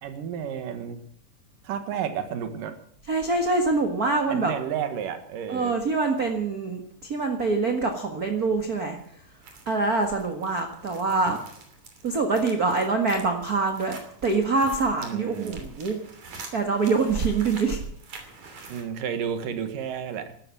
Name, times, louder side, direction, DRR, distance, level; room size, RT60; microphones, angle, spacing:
voice 1, 0.0-1.0 1.6-2.8 4.3-5.8 15.0-15.6 18.7-20.3, right 8 dB, 85° right, 8 dB, 3.2 m, -31 dB
voice 2, 3.1-4.5 5.5-9.0 9.6-11.4 12.0-16.0 16.5-17.8, right 3 dB, 35° right, 4 dB, 1.6 m, -25 dB
sound 1, 9.4-18.8, right 4 dB, 60° right, 4.3 m, -45 dB
13.5 x 13.0 x 7.5 m, 0.64 s
omnidirectional pair, 3.8 m